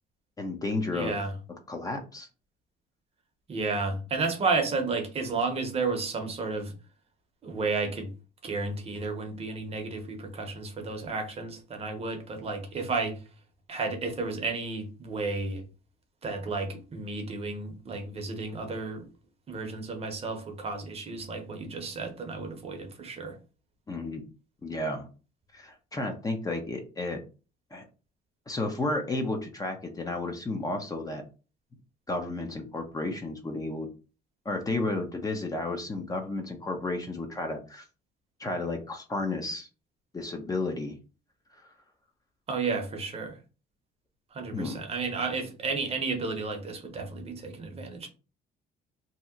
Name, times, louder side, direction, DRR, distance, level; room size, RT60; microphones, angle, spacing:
voice 1, 0.4-1.1 1.7-2.3 23.9-24.2 24.6-25.1 25.5-27.2 27.7-27.9 28.5-31.2 32.1-33.9 34.4-37.8 38.4-39.7 40.1-41.0 44.5-44.8, left 2 dB, 20° left, 3 dB, 0.6 m, -32 dB
voice 2, 0.9-1.3 3.5-6.7 7.4-8.1 8.4-13.2 13.7-15.6 16.2-19.0 19.5-23.4 42.5-43.4 44.3-48.1, right 3 dB, 35° right, 4 dB, 0.8 m, -32 dB
2.8 x 2.0 x 3.6 m, 0.34 s
cardioid pair, 110°, 17 cm